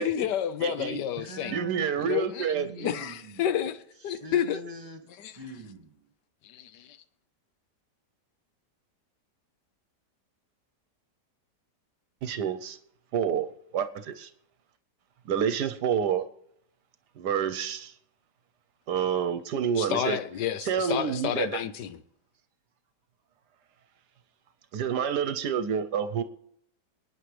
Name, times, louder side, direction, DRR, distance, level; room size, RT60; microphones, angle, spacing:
voice 1, 0.0-1.6 2.0-4.6 5.2-5.4 6.4-7.0 19.7-22.0, left 9 dB, 80° left, 1.3 m, -30 dB
voice 2, 0.6-1.0 1.5-2.9 12.2-12.8 13.1-13.5 13.7-14.3 15.3-16.2 17.2-17.9 18.9-20.2 20.7-21.5 24.7-26.2, right 8 dB, 75° right, 1.3 m, -28 dB
voice 3, 1.2-2.2 2.5-3.5 4.1-5.0 5.3-6.1, right 2 dB, 25° right, 2.0 m, -42 dB
27.0 x 9.7 x 3.3 m
omnidirectional pair, 1.8 m